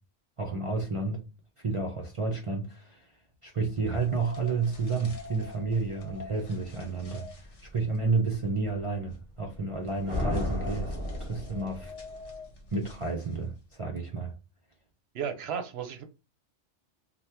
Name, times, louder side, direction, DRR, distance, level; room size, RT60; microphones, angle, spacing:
voice 1, 0.4-1.2 1.6-3.1 3.4-11.9 12.7-14.3, right 3 dB, 50° right, 0.4 m, -31 dB
sound 1, 3.7-13.6, left 1 dB, 55° left, 1.1 m, -44 dB
sound 2, 10.1-12.0, left 1 dB, 10° right, 0.8 m, -33 dB
voice 2, 15.1-16.0, right 7 dB, 65° right, 0.8 m, -34 dB
2.8 x 2.2 x 3.3 m
omnidirectional pair, 1.2 m